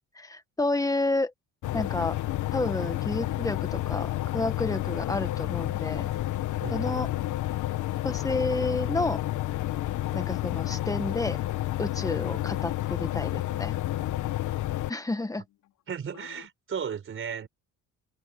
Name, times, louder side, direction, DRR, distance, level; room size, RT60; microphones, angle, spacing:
voice 1, 0.1-1.3 1.7-2.2 2.5-6.1 6.7-7.1 8.0-9.2 10.1-11.4 11.8-13.7 14.9-15.4, left 2 dB, 10° left, 1.6 m, -30 dB
sound 1, 1.6-14.9, left 15 dB, 70° left, 1.3 m, -30 dB
sound 2, 4.9-7.7 8.1-15.8 16.1-16.5, left 14 dB, 85° left, 4.5 m, -52 dB
voice 2, 6.6-7.1 15.9-17.5, right 7 dB, 40° right, 4.4 m, -35 dB
cardioid pair, 130°, 32 cm